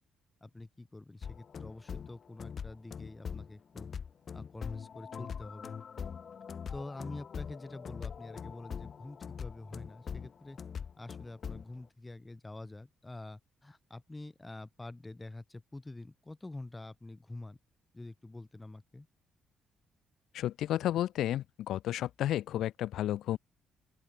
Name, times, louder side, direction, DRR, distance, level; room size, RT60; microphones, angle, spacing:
voice 1, 0.4-3.9 4.3-5.8 6.7-10.6 11.0-17.6 17.9-19.1, left 2 dB, 15° left, 4.4 m, -46 dB
sound 1, 1.2-11.7, left 7 dB, 50° left, 5.6 m, -42 dB
voice 2, 20.3-23.4, left 12 dB, 80° left, 1.0 m, -32 dB
open air
cardioid pair, 90°, 0 cm